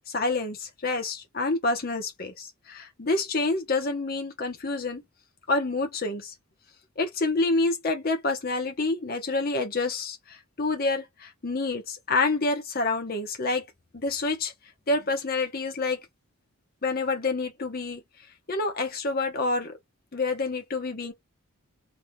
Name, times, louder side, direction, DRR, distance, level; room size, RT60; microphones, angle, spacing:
voice 1, 0.1-5.0 5.5-6.3 7.0-13.6 13.9-14.5 14.9-16.0 16.8-18.0 18.5-19.8 20.1-21.1, left 3 dB, 45° left, 0.9 m, -28 dB
3.4 x 2.8 x 2.2 m
head